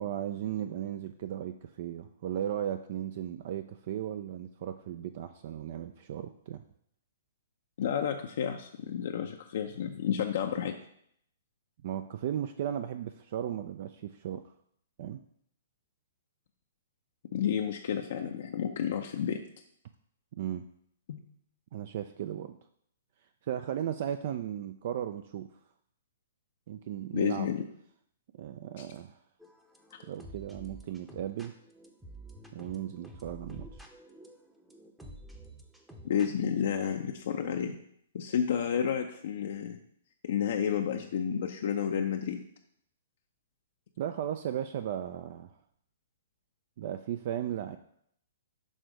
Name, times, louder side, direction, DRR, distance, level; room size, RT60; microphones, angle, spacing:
voice 1, 0.0-6.6 11.8-14.5 15.0-15.2 20.4-20.6 21.7-22.6 23.4-25.5 26.7-27.5 28.3-29.2 30.0-31.5 32.5-33.8 44.0-45.6 46.8-47.8, right 10 dB, 50° right, 9 dB, 0.3 m, -36 dB
voice 2, 7.8-10.7 17.3-19.4 21.1-21.2 27.1-27.6 28.8-28.9 36.0-37.8 38.1-39.8 40.2-42.4, left 8 dB, 60° left, 3 dB, 0.5 m, -31 dB
sound 1, 29.4-36.6, right 1 dB, 5° right, 0.7 m, -50 dB
6.3 x 3.4 x 5.0 m, 0.69 s
figure-of-eight pair, 120°, 0 cm